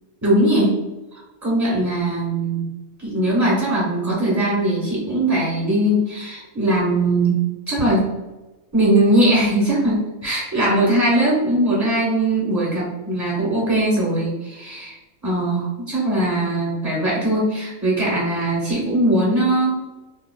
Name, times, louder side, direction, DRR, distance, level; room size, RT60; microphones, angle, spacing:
voice 1, 0.2-0.8 1.1-2.6 3.0-7.4 7.7-8.1 8.7-15.0 15.2-19.8, right 1 dB, 15° right, -7 dB, 1.1 m, -20 dB
2.8 x 2.3 x 2.3 m, 1.1 s
omnidirectional pair, 1.4 m